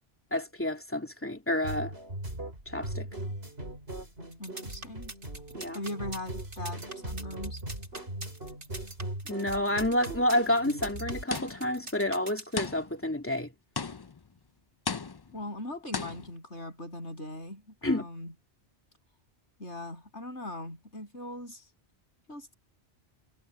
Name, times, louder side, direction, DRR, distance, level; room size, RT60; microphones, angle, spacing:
voice 1, 0.3-1.9 2.7-3.1 5.5-5.8 9.3-13.5 17.8-18.1, left 1 dB, 10° left, 2.6 m, -29 dB
sound 1, 1.6-11.2, right 1 dB, 60° right, 6.4 m, -39 dB
sound 2, 4.3-12.6, right 2 dB, 80° right, 3.4 m, -43 dB
voice 2, 4.4-5.1 5.7-7.6 15.3-18.3 19.6-21.6 22.3-22.5, left 1 dB, 85° left, 8.6 m, -40 dB
sound 3, 11.3-11.8 12.6-13.1 13.8-14.3 14.9-15.4 15.9-16.4, left 5 dB, 35° left, 0.4 m, -36 dB
omnidirectional pair, 1.2 m